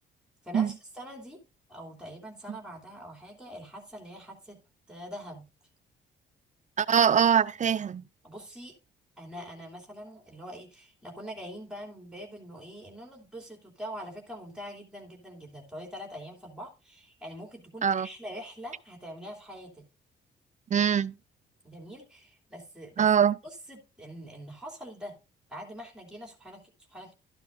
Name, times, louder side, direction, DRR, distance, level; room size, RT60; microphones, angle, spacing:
voice 1, 0.4-1.4 1.7-4.6 4.9-5.5 8.2-8.7 9.2-19.8 21.6-23.1 23.4-25.2 25.5-27.1, equal, 5° right, 3.0 m, -44 dB
voice 2, 6.8-8.0 17.8-18.1 20.7-21.1 23.0-23.3, right 8 dB, 40° right, 0.4 m, -23 dB
12.0 x 9.8 x 2.6 m
cardioid pair, 90°, 20 cm